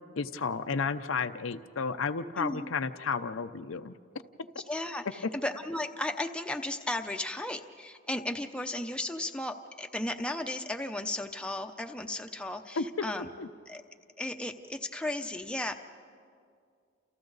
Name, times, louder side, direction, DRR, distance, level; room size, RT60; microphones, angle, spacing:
voice 1, 0.2-3.9 12.8-12.9 13.4-13.5, left 5 dB, 80° left, 10 dB, 0.7 m, -32 dB
voice 2, 4.7-13.3 13.7-13.8 14.2-15.7, left 1 dB, 5° left, 5 dB, 0.7 m, -35 dB
29.5 x 28.5 x 4.0 m, 2.3 s
head